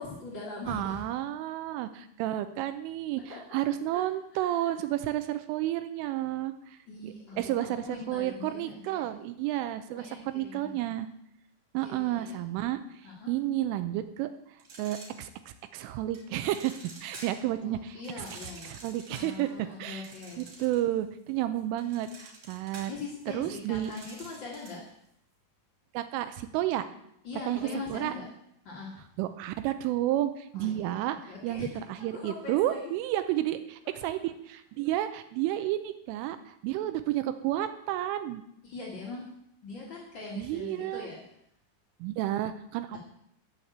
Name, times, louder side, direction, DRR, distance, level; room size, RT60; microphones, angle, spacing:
voice 1, 0.0-1.0 3.3-3.6 3.9-4.0 4.3-4.7 6.9-9.0 9.9-10.9 11.8-12.3 13.0-13.3 17.6-18.8 19.1-20.4 22.9-24.8 27.2-28.2 28.6-29.0 30.5-31.7 32.0-32.9 34.0-34.1 38.6-39.3 39.6-41.2 42.9-43.0, left 3 dB, 60° left, -3 dB, 1.2 m, -42 dB
voice 2, 0.7-6.8 7.0-11.1 11.7-13.0 13.3-14.3 14.8-18.3 18.6-20.1 20.4-22.9 23.3-23.9 25.9-26.9 27.5-28.1 29.2-38.4 40.4-41.1 42.0-43.0, right 13 dB, 80° right, 10 dB, 3.1 m, -31 dB
sound 1, 14.6-15.6 16.1-17.5 18.0-21.0 21.3-24.9, right 3 dB, 40° right, 3.2 m, -48 dB
14.0 x 5.9 x 7.9 m, 0.74 s
omnidirectional pair, 5.9 m